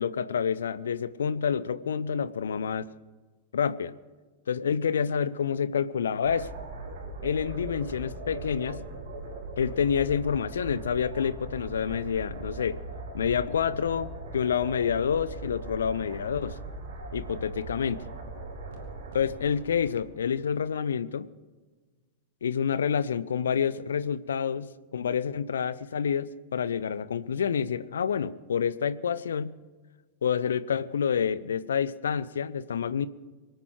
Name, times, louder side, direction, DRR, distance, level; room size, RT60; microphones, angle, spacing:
voice 1, 0.0-2.8 3.5-3.9 4.5-6.5 7.2-8.8 9.6-12.8 13.1-16.6 17.1-18.0 19.1-21.3 22.4-29.6 30.2-33.1, left 7 dB, 65° left, 17 dB, 0.6 m, -28 dB
sound 1, 6.2-20.5, right 2 dB, 55° right, 3.3 m, -40 dB
25.0 x 9.2 x 4.8 m, 1.3 s
figure-of-eight pair, 90°, 0 cm